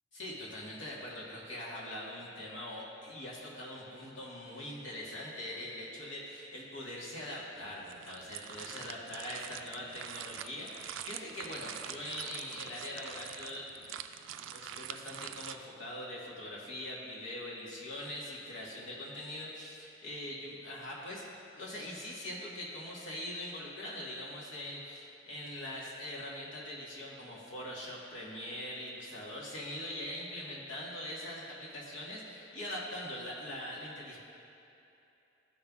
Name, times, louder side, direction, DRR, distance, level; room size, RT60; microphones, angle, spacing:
voice 1, 0.1-13.7 14.4-21.2 21.5-34.2, left 1 dB, 90° left, -5 dB, 1.6 m, -42 dB
sound 1, 7.5-15.6, right 10 dB, 85° right, 0.3 m, -45 dB
12.5 x 5.3 x 2.4 m, 2.8 s
head